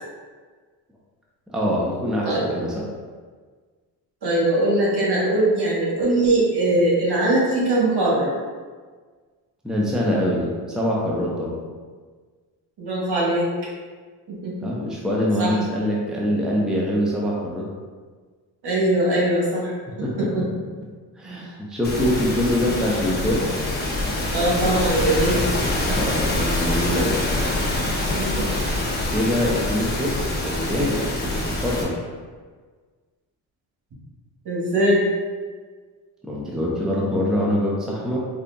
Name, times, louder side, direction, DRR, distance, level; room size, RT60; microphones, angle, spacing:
voice 1, 1.5-2.8 9.6-11.6 14.6-17.7 20.0-20.3 21.2-23.5 25.9-27.2 28.3-28.7 29.1-32.0 36.2-38.2, left 1 dB, ahead, -4 dB, 0.7 m, -24 dB
voice 2, 4.2-8.3 12.8-13.5 14.3-14.7 15.4-15.5 18.6-19.7 20.2-20.4 24.3-25.5 25.9-26.0 28.0-28.4 34.4-35.0, right 1 dB, 60° right, -5 dB, 1.4 m, -21 dB
sound 1, 21.8-31.8, left 1 dB, 20° left, 0.9 m, -25 dB
5.0 x 2.5 x 2.3 m, 1.5 s
supercardioid pair, 65°, 44 cm